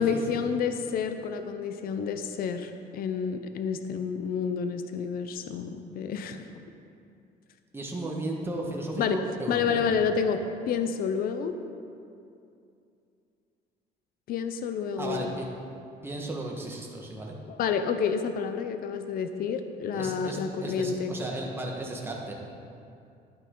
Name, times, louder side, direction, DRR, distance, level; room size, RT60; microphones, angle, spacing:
voice 1, 0.0-6.4 9.0-9.2 9.5-11.5 14.3-15.3 17.5-21.2, left 6 dB, 60° left, 8 dB, 0.6 m, -29 dB
voice 2, 7.7-9.9 15.0-15.5 16.0-17.3 19.9-22.3, right 1 dB, 15° right, -2 dB, 1.5 m, -35 dB
10.5 x 9.4 x 3.8 m, 2.6 s
cardioid pair, 110°, 17 cm